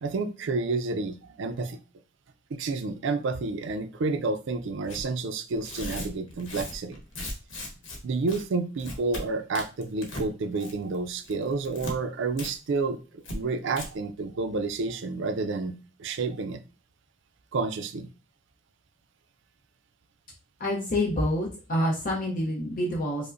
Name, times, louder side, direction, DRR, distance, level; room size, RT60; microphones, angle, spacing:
voice 1, 0.0-1.8 2.5-7.0 8.0-13.0 13.3-16.6 17.5-18.1, right 3 dB, 65° right, 9 dB, 0.4 m, -30 dB
Tearing, 4.9-5.0 5.6-8.0 8.3-8.4 8.8-9.2 9.5-10.3 10.6-10.9 11.2-11.9 12.4-12.5 12.8-12.9 13.2-13.4 13.7-13.9, left 1 dB, 70° left, 1.1 m, -37 dB
voice 2, 20.6-23.3, left 1 dB, 45° left, -2 dB, 0.7 m, -27 dB
4.8 x 2.1 x 2.5 m, 0.33 s
head